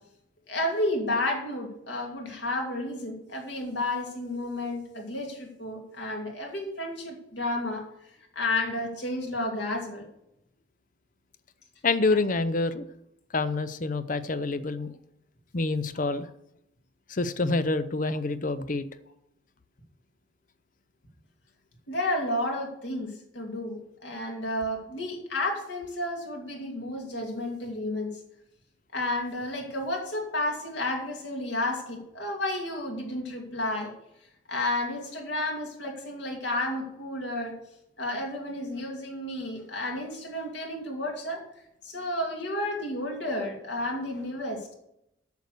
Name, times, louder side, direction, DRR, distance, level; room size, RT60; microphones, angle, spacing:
voice 1, 0.5-7.8 8.3-10.1 21.9-28.1 28.9-33.9 34.5-37.5 38.0-41.4 41.8-44.7, left 1 dB, 60° left, 1 dB, 2.6 m, -31 dB
voice 2, 11.8-12.9 13.3-14.9 15.5-16.3 17.1-18.9, left 3 dB, 40° left, 13 dB, 0.6 m, -27 dB
9.4 x 6.7 x 6.7 m, 0.80 s
head